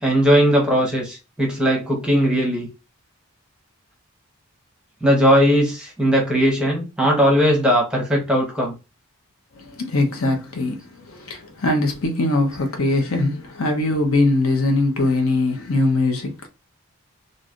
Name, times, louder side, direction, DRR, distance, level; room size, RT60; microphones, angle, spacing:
voice 1, 0.0-2.7 5.0-8.7, equal, 5° right, 0.8 m, -18 dB
voice 2, 9.5-16.5, left 2 dB, 70° left, 0.8 m, -21 dB
3.1 x 2.6 x 2.5 m
head